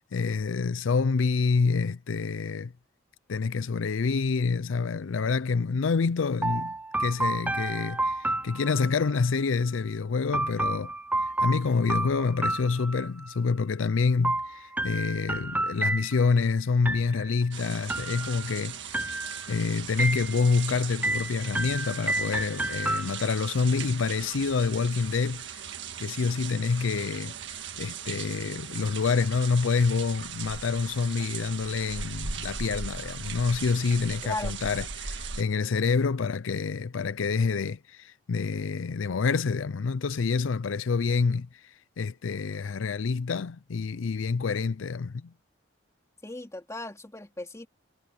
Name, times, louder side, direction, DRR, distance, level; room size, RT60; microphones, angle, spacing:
voice 1, 0.0-2.7 3.3-6.7 7.0-10.9 11.2-18.8 19.5-25.6 26.0-45.3, left 4 dB, 85° left, 0.5 m, -27 dB
sound 1, 6.4-9.2 10.3-13.3 14.2-16.4 16.9-17.5 17.9-18.6 18.9-19.6 20.0-20.6 21.0-23.5, right 2 dB, 10° right, 0.7 m, -31 dB
sound 2, 17.5-35.4, right 7 dB, 65° right, 1.7 m, -39 dB
voice 2, 34.2-34.5 46.2-47.7, left 2 dB, 15° left, 3.0 m, -36 dB
head